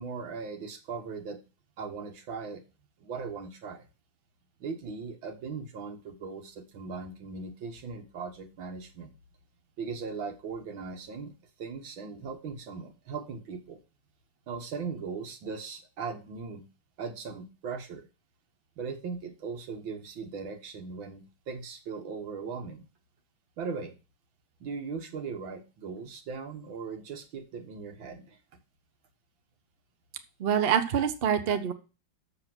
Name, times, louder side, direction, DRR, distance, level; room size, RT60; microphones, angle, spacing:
voice 1, 0.0-1.4 1.8-2.6 3.0-3.8 4.6-9.1 9.8-11.3 11.6-13.8 14.5-16.6 17.0-18.0 18.8-22.9 23.6-23.9 24.6-28.4, right 5 dB, 85° right, 5 dB, 2.1 m, -38 dB
voice 2, 30.4-31.7, right 8 dB, 45° right, 8 dB, 0.8 m, -25 dB
6.9 x 6.6 x 6.1 m, 0.33 s
omnidirectional pair, 2.1 m